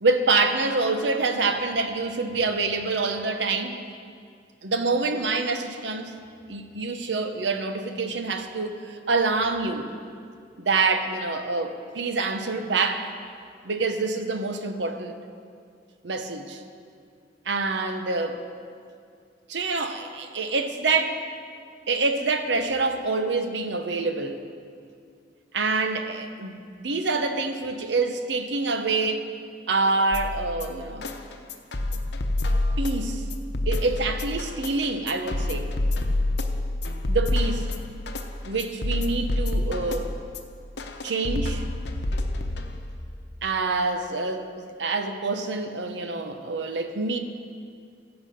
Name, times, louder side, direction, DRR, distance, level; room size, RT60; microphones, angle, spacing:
voice 1, 0.0-3.8 4.6-6.1 6.5-9.9 10.6-13.1 13.6-15.1 16.0-16.6 17.5-18.4 19.5-21.2 21.9-24.4 25.5-29.3 29.7-31.1 31.9-32.0 32.8-33.2 33.7-35.7 37.1-37.7 38.4-40.1 41.0-41.6 43.4-47.2, right 3 dB, 85° right, 0.9 m, -26 dB
sound 1, 30.1-43.1, left 2 dB, 70° left, 0.8 m, -28 dB
16.0 x 7.0 x 5.3 m
head